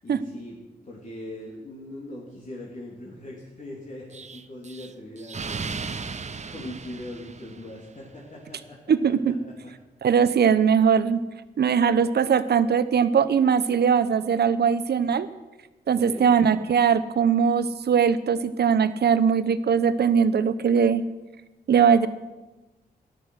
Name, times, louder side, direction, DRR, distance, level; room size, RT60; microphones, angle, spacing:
voice 1, 0.0-0.6 0.9-9.7 15.9-16.4, left 1 dB, 45° left, -4 dB, 3.3 m, -41 dB
Explosion, 4.1-8.0, right 5 dB, 40° right, 0.8 m, -36 dB
voice 2, 8.9-9.3 10.0-11.2 11.6-15.3 15.9-21.0 21.7-22.1, right 7 dB, 70° right, 13 dB, 0.9 m, -20 dB
13.5 x 11.5 x 6.5 m, 1.1 s
cardioid pair, 60°, 17 cm